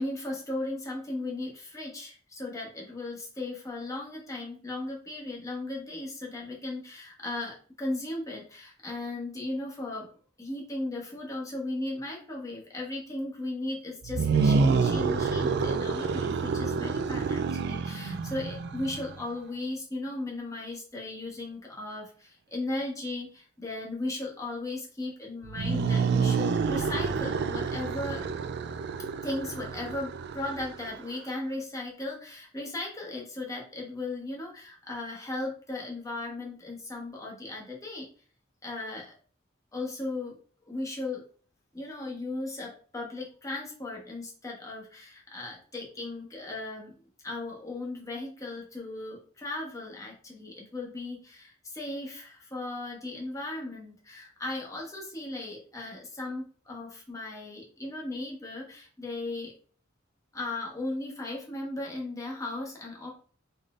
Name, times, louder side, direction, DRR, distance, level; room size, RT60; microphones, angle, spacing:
voice 1, 0.0-10.1 10.4-28.2 29.2-38.1 38.6-39.2 39.7-40.4 40.6-41.2 41.7-47.0 47.2-59.5 60.3-63.1, left 2 dB, 15° left, -3 dB, 1.1 m, -36 dB
sound 1, 14.0-19.2 25.4-31.1, right 5 dB, 55° right, 0.3 m, -28 dB
3.9 x 3.6 x 2.4 m, 0.42 s
head